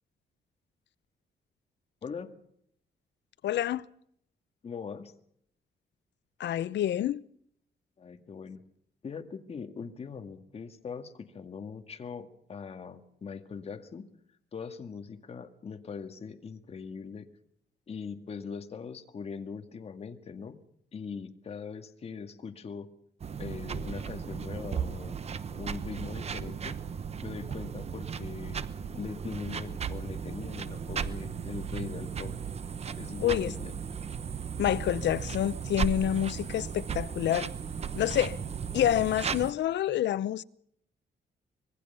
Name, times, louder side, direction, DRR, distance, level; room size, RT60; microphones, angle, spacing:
voice 1, 2.0-2.4 4.6-5.1 8.0-8.6 9.0-14.1 14.5-17.3 17.9-20.6 20.9-22.9 23.4-25.2 25.5-26.8 27.2-28.6 28.9-32.3 33.0-33.7, left 5 dB, 35° left, 2.0 m, -41 dB
voice 2, 3.4-3.9 6.4-7.2 33.2-33.5 34.6-37.5 38.0-38.4 38.7-40.4, left 11 dB, 85° left, 0.8 m, -28 dB
sound 1, 23.2-39.5, right 6 dB, 35° right, 1.0 m, -36 dB
25.5 x 21.5 x 5.6 m
wide cardioid pair, 175°, 18 cm